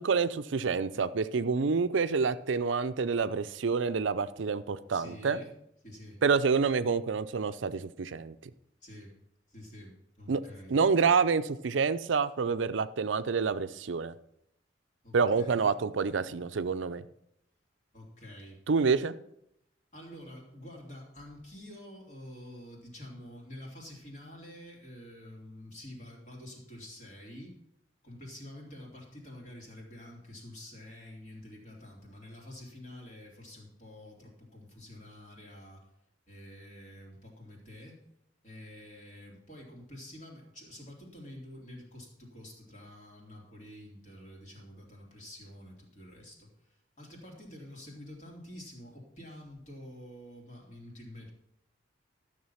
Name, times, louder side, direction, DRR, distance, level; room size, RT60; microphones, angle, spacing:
voice 1, 0.0-5.4 6.2-8.3 10.3-10.4 10.7-14.1 15.1-17.0 18.7-19.2, right 5 dB, 85° right, 13 dB, 0.5 m, -28 dB
voice 2, 4.9-5.5 5.8-6.2 8.8-9.2 9.5-10.7 15.0-15.7 17.9-18.6 19.9-27.6 28.0-35.9 36.3-38.0 38.4-51.3, left 1 dB, 40° left, -1 dB, 3.1 m, -48 dB
12.5 x 6.6 x 5.7 m, 0.78 s
head